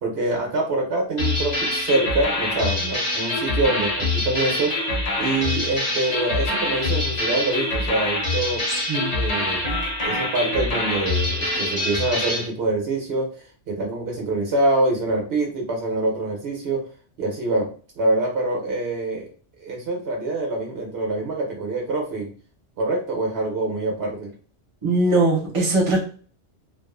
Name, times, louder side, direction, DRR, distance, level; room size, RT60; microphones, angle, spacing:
voice 1, 0.0-4.7 5.2-8.6 9.1-9.6 10.0-13.3 13.7-16.8 17.2-17.7 17.9-19.3 19.6-22.3 22.8-24.3, right 2 dB, 65° right, 0 dB, 1.0 m, -25 dB
sound 1, 1.2-12.5, left 2 dB, 40° left, 0.7 m, -25 dB
voice 2, 24.8-26.0, right 2 dB, 30° right, -3 dB, 0.8 m, -20 dB
2.5 x 2.3 x 2.4 m, 0.41 s
omnidirectional pair, 1.2 m